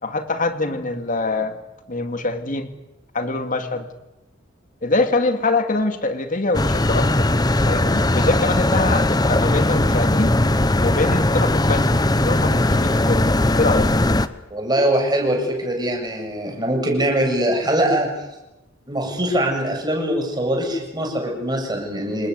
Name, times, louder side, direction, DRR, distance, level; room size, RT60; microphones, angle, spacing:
voice 1, 0.0-1.6 1.9-2.7 3.1-3.9 4.8-7.3 7.6-10.3 10.8-13.3 13.6-13.9, left 2 dB, 40° left, 7 dB, 2.4 m, -24 dB
sound 1, 6.5-14.3, left 1 dB, 20° left, 0.9 m, -19 dB
voice 2, 14.5-18.1 18.9-22.3, right 1 dB, 20° right, 1 dB, 7.3 m, -22 dB
28.5 x 20.0 x 8.3 m, 0.94 s
head